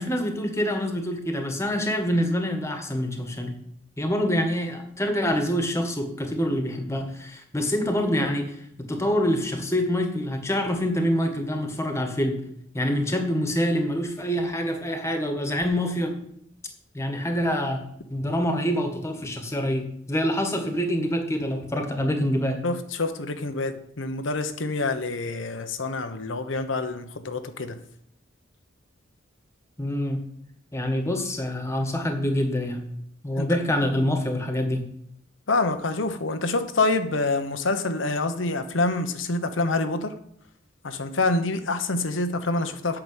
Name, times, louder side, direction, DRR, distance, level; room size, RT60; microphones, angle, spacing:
voice 1, 0.0-3.5 4.0-12.4 12.7-16.2 16.9-17.8 18.1-22.6 29.8-30.2 30.7-32.8 33.2-34.8, equal, 15° left, 5 dB, 1.6 m, -26 dB
voice 2, 22.6-27.8 33.4-33.6 35.5-40.1 40.8-43.0, left 3 dB, 80° left, 8 dB, 1.0 m, -26 dB
8.7 x 6.0 x 8.0 m, 0.70 s
head